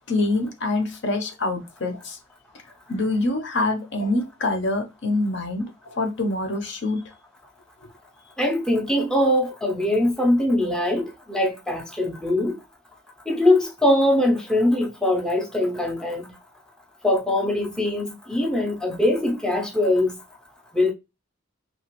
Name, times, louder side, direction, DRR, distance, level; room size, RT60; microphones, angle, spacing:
voice 1, 0.1-2.2 2.9-7.0 7.8-7.9, left 2 dB, 55° left, 0.7 m, -25 dB
voice 2, 8.4-12.6 13.3-16.3 17.0-20.1 20.7-20.9, left 1 dB, 5° left, 0.5 m, -22 dB
2.9 x 2.3 x 2.9 m
head